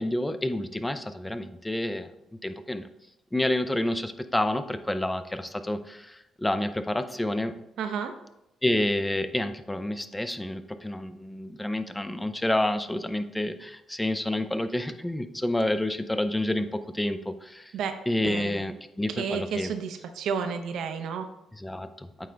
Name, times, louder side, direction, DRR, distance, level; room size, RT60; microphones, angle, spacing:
voice 1, 0.0-2.0 2.4-2.8 3.3-5.2 5.7-5.8 6.4-7.5 8.6-11.1 11.4-13.5 14.0-16.6 17.0-17.2 18.1-18.7 19.0-19.7 21.6-21.9, left 1 dB, 10° left, 10 dB, 0.4 m, -28 dB
voice 2, 7.8-8.1 17.7-18.0 18.2-18.6 19.1-21.3, right 6 dB, 80° right, 7 dB, 0.7 m, -31 dB
8.8 x 3.8 x 3.3 m, 0.84 s
cardioid pair, 90°, 0 cm